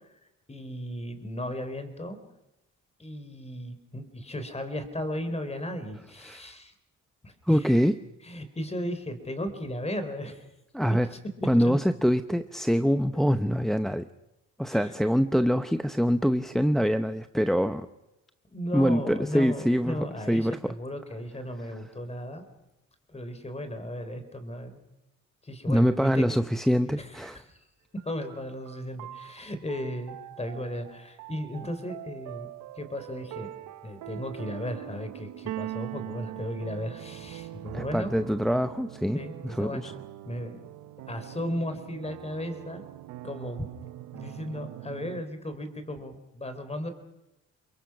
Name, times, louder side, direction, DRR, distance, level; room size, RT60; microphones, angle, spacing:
voice 1, 0.5-2.2 3.0-6.7 7.2-7.8 8.2-10.4 11.1-11.2 11.6-11.8 14.7-14.9 18.5-22.4 23.1-24.8 25.4-26.4 27.0-27.6 28.0-32.5 32.8-33.5 33.8-38.1 39.1-40.0 40.2-40.6 41.1-42.8 43.2-43.7 44.1-46.9, left 1 dB, 20° left, 9 dB, 3.9 m, -35 dB
voice 2, 7.5-8.0 10.7-11.1 11.4-14.1 14.6-17.9 18.7-20.7 25.7-27.4 37.7-39.9, equal, ahead, 10 dB, 0.8 m, -25 dB
sound 1, 28.0-45.2, right 15 dB, 90° right, 0.9 m, -42 dB
28.5 x 22.5 x 5.9 m, 0.92 s
cardioid pair, 90°, 30 cm